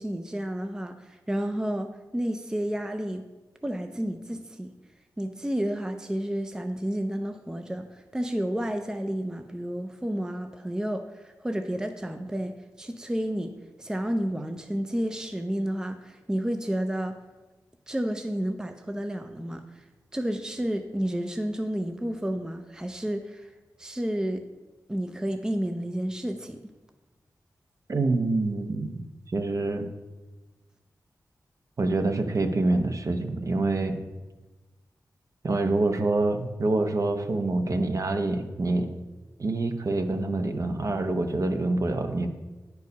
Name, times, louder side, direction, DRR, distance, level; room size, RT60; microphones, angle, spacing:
voice 1, 0.0-3.3 3.6-4.7 5.2-13.5 13.8-17.2 17.9-19.8 20.1-23.5 23.8-24.4 24.9-26.6, equal, 10° right, 7 dB, 0.5 m, -31 dB
voice 2, 27.9-29.9 31.8-34.0 35.4-38.9 39.4-42.3, right 2 dB, 50° right, 6 dB, 0.7 m, -26 dB
9.4 x 4.6 x 5.3 m, 1.2 s
wide cardioid pair, 110°, 7 cm